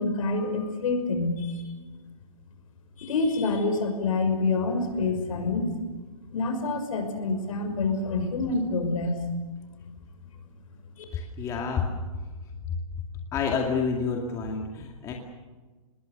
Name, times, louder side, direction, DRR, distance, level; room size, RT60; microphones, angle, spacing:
voice 1, 0.0-1.7 3.0-5.8 6.3-9.1 11.0-11.1, left 3 dB, 65° left, 6 dB, 6.1 m, -27 dB
voice 2, 11.1-11.9 13.3-15.1, left 5 dB, 15° left, 0 dB, 2.3 m, -28 dB
26.0 x 21.0 x 6.7 m, 1.3 s
hypercardioid pair, 165°, 19 cm